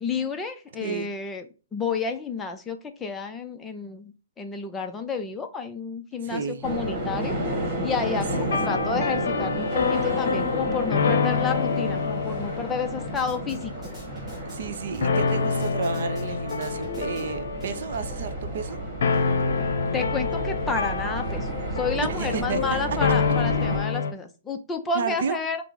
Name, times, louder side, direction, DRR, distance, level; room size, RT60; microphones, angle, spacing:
voice 1, 0.0-1.4 1.7-7.4 7.8-13.7 19.9-21.5 21.8-25.6, left 5 dB, 10° left, 0.4 m, -30 dB
voice 2, 6.2-6.7 8.4-8.8 14.4-18.8 22.0-22.6 24.9-25.4, right 6 dB, 60° right, 0.6 m, -32 dB
sound 1, 6.6-23.8, right 1 dB, 25° right, 1.6 m, -32 dB
sound 2, 8.3-14.7 15.0-24.1, left 5 dB, 65° left, 0.7 m, -27 dB
sound 3, 13.1-18.1, right 1 dB, 5° right, 2.2 m, -48 dB
5.7 x 2.0 x 4.6 m
hypercardioid pair, 150°, 0 cm